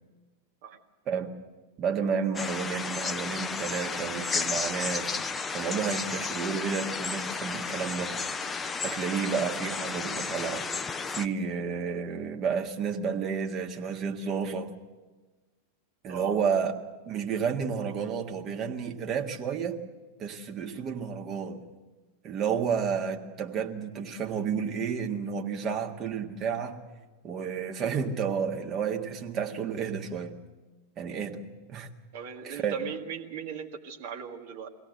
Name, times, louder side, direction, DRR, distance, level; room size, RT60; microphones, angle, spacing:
voice 1, 1.8-5.1 5.5-8.2 8.8-10.7 11.1-14.7 16.0-16.7 17.1-19.8 20.2-21.6 22.2-26.8 27.2-30.4 31.0-31.4 31.7-31.9 32.4-32.8, right 6 dB, 30° right, 3 dB, 1.7 m, -31 dB
sound 1, 2.3-11.3, left 4 dB, 15° left, 0.6 m, -33 dB
voice 2, 16.1-16.6 32.1-34.7, right 7 dB, 55° right, 3 dB, 1.7 m, -38 dB
23.0 x 17.0 x 8.0 m, 1.2 s
figure-of-eight pair, 90°, 0 cm